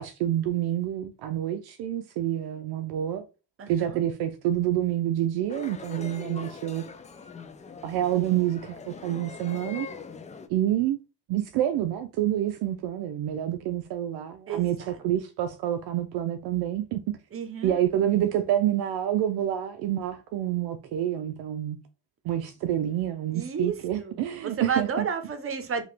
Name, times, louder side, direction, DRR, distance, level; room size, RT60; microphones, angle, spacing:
voice 1, 0.0-3.2 3.7-6.8 7.8-9.9 10.5-11.0 11.3-17.0 17.6-21.8 22.2-25.1, right 12 dB, 65° right, 0.5 m, -27 dB
voice 2, 3.6-4.0 14.5-15.0 17.3-17.7 23.3-25.8, right 6 dB, 35° right, 0.8 m, -32 dB
sound 1, 5.5-10.5, left 5 dB, 20° left, 0.3 m, -42 dB
2.9 x 2.4 x 3.2 m
supercardioid pair, 75°, 40 cm